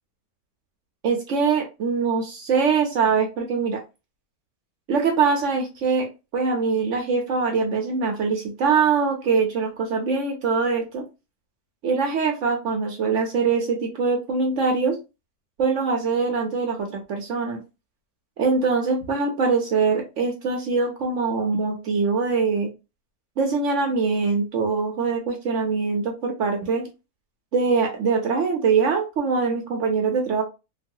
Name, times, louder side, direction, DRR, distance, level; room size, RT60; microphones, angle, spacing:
voice 1, 1.0-3.8 4.9-6.1 6.3-11.0 11.8-15.0 15.6-17.6 18.4-22.7 23.4-26.9 27.5-30.4, right 5 dB, 60° right, 3 dB, 0.8 m, -23 dB
3.0 x 2.3 x 2.6 m, 0.27 s
omnidirectional pair, 1.7 m